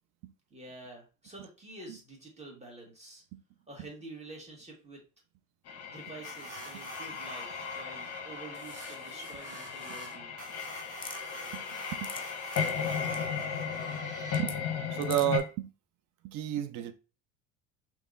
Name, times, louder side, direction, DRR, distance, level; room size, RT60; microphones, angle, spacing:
voice 1, 0.5-3.2 3.7-5.0 5.9-10.4, right 2 dB, 15° right, 1.6 m, -48 dB
sound 1, 5.7-15.4, left 7 dB, 40° left, 0.8 m, -36 dB
sound 2, 6.2-14.4, equal, 40° right, 1.7 m, -45 dB
sound 3, 11.0-11.2 11.8-12.2 12.5-12.7 13.0-13.2 14.3-14.5 15.0-15.4, left 5 dB, 15° left, 0.4 m, -41 dB
voice 2, 14.9-15.7 16.2-16.9, right 12 dB, 55° right, 0.6 m, -31 dB
3.4 x 3.0 x 2.5 m
hypercardioid pair, 70°, 40 cm